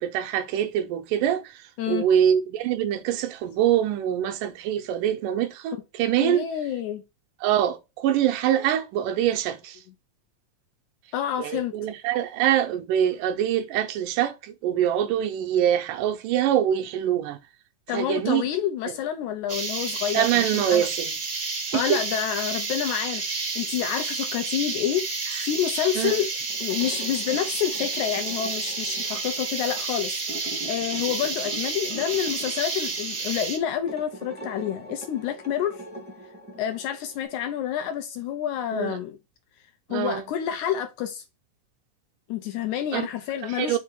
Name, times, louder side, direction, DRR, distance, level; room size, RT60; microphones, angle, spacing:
voice 1, 0.0-1.4 1.9-6.5 7.4-9.8 11.4-17.4 17.9-18.4 20.1-21.1 21.7-22.0 26.0-26.2 38.7-39.0 39.9-40.2 42.9-43.1 43.6-43.8, right 10 dB, 80° right, 2.2 m, -24 dB
voice 2, 6.2-7.0 11.1-11.7 17.9-20.9 21.7-25.1 25.4-26.3 26.6-35.8 36.6-39.2 39.9-41.2 42.3-43.8, left 10 dB, 80° left, 1.8 m, -28 dB
sound 1, 19.5-33.6, right 4 dB, 60° right, 0.8 m, -30 dB
sound 2, 26.5-37.2, equal, 5° right, 0.8 m, -43 dB
5.5 x 3.4 x 5.1 m
omnidirectional pair, 3.8 m